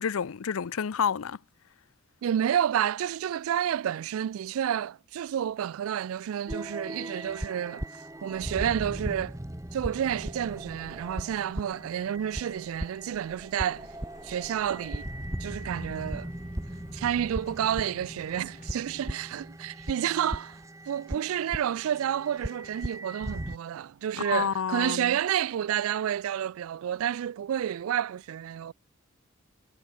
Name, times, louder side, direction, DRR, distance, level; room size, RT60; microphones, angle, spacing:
voice 1, 0.0-1.4 24.2-25.2, left 7 dB, 85° left, 0.5 m, -29 dB
voice 2, 2.2-7.9 8.2-9.4 9.7-13.9 14.2-15.1 15.4-16.3 16.9-20.6 20.9-28.7, right 9 dB, 80° right, 0.3 m, -30 dB
sound 1, 6.5-23.6, right 1 dB, 15° right, 1.1 m, -38 dB
sound 2, 13.7-18.8, left 2 dB, 35° left, 1.9 m, -55 dB
head